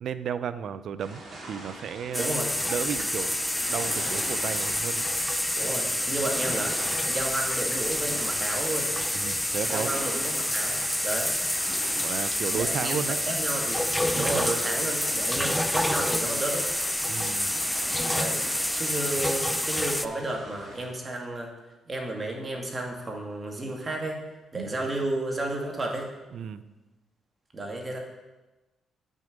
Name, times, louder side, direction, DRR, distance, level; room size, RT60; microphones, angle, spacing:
voice 1, 0.0-1.2 1.5-2.4 2.7-3.4 3.7-5.1 5.6-5.7 9.1-9.9 12.0-13.2 14.1-14.5 17.1-17.6 24.5-24.8 26.3-26.6, right 7 dB, 65° right, 13 dB, 0.5 m, -33 dB
sound 1, 1.0-20.9, right 1 dB, 45° right, 3.0 m, -44 dB
sound 2, 2.1-20.1, left 1 dB, 5° left, 0.4 m, -28 dB
voice 2, 2.1-2.5 5.6-6.8 7.1-8.9 9.7-11.4 12.5-13.8 14.1-16.7 18.1-18.4 18.7-21.5 21.9-24.2 24.5-26.1 27.5-28.0, right 2 dB, 30° right, 1 dB, 2.0 m, -32 dB
8.7 x 6.3 x 5.2 m, 1.1 s
cardioid pair, 80°, 0 cm